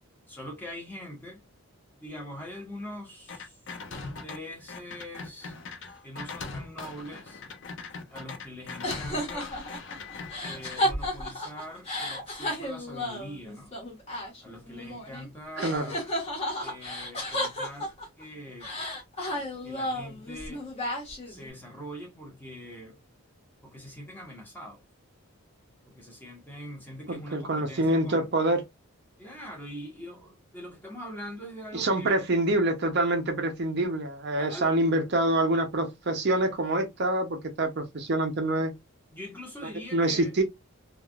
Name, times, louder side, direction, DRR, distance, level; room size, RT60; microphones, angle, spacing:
voice 1, 0.3-1.4 2.0-3.6 3.9-5.5 6.0-7.4 8.1-9.6 10.4-13.7 14.4-16.1 16.6-18.7 19.6-20.6 21.3-23.0 23.6-24.8 25.9-28.3 29.2-32.3 34.4-34.7 39.1-40.3, equal, 10° left, 1.0 m, -43 dB
sound 1, 3.3-4.4 4.7-10.8, left 4 dB, 55° left, 0.6 m, -40 dB
sound 2, 8.8-15.3 15.6-18.2 18.6-21.5, left 1 dB, 30° left, 1.2 m, -33 dB
voice 2, 15.6-15.9 27.1-28.6 31.7-38.7 39.9-40.4, right 1 dB, 50° right, 0.6 m, -26 dB
3.3 x 2.4 x 2.3 m
head